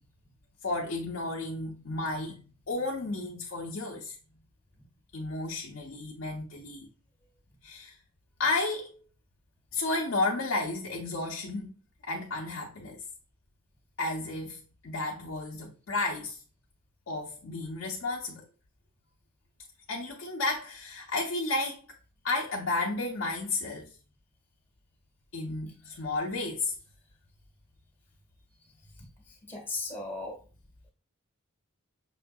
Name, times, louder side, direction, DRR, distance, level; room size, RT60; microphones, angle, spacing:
voice 1, 0.6-4.2 5.1-6.9 7.6-7.9 8.4-9.0 9.7-11.7 12.1-13.0 14.0-16.4 17.1-18.4 19.9-21.8 22.2-23.9 25.3-26.7, left 2 dB, 65° left, 0.6 m, -32 dB
voice 2, 29.3-30.4, left 3 dB, 10° left, 1.3 m, -37 dB
6.1 x 2.6 x 2.2 m
head